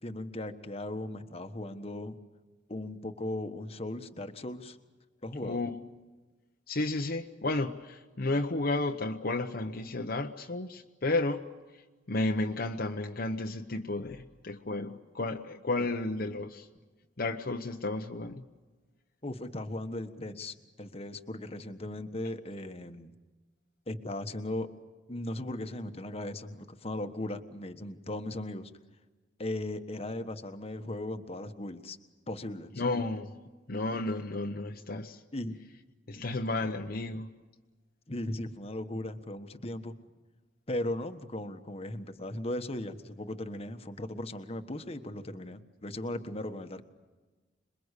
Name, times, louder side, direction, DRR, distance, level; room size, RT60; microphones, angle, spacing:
voice 1, 0.0-2.2 2.7-4.8 5.2-5.6 19.2-23.1 23.9-24.7 25.1-28.7 29.4-32.0 32.3-32.7 35.3-35.6 36.1-36.3 38.1-39.9 40.7-46.8, left 1 dB, 35° left, 8 dB, 1.3 m, -37 dB
voice 2, 5.4-5.7 6.7-11.5 12.1-16.7 17.2-18.4 32.8-33.3 33.7-35.2 36.1-37.3, left 2 dB, 55° left, 3 dB, 1.0 m, -32 dB
27.5 x 22.0 x 8.3 m, 1.3 s
head